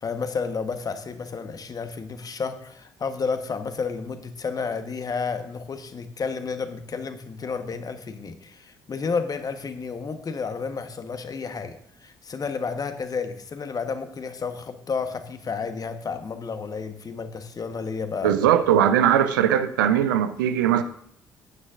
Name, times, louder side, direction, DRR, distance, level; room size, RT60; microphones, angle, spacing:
voice 1, 0.0-18.4, left 5 dB, 35° left, 1.2 m, -31 dB
voice 2, 18.2-20.8, right 10 dB, 75° right, 0.6 m, -20 dB
14.5 x 9.8 x 2.6 m
figure-of-eight pair, 45°, 11 cm